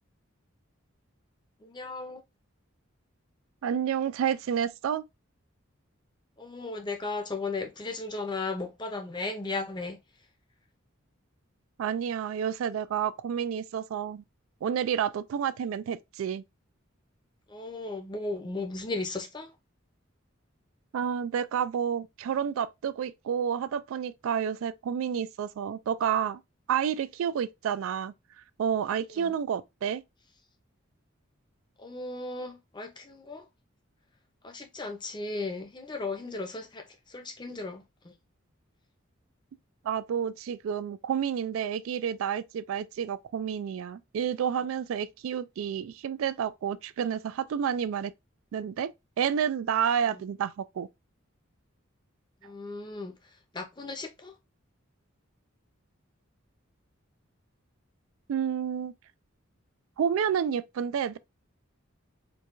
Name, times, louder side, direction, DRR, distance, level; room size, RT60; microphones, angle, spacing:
voice 1, 1.6-2.2 6.4-10.0 17.5-19.5 29.1-29.3 31.8-33.5 34.4-38.1 50.1-50.2 52.4-53.1 53.5-54.3, left 3 dB, 20° left, 0.6 m, -36 dB
voice 2, 3.6-5.0 11.8-14.2 14.6-16.4 20.9-26.4 26.7-28.1 28.6-30.0 39.8-48.1 48.5-48.9 49.2-50.9 58.3-58.9 60.0-61.2, right 8 dB, 80° right, 0.3 m, -30 dB
4.5 x 2.3 x 2.5 m
head